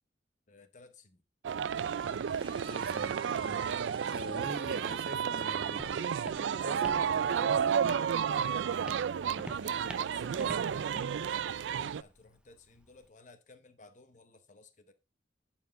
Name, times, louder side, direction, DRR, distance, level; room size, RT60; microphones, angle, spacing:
voice 1, 0.5-1.2 9.4-14.9, left 3 dB, 45° left, 0.9 m, -57 dB
sound 1, 1.4-12.0, right 7 dB, 85° right, 0.4 m, -32 dB
sound 2, 1.6-8.2, right 3 dB, 30° right, 2.1 m, -54 dB
voice 2, 2.6-3.7 4.1-8.1, right 1 dB, 55° right, 1.5 m, -43 dB
Walk footsteps, 5.1-13.1, equal, 5° right, 0.6 m, -50 dB
11.5 x 4.5 x 5.2 m
head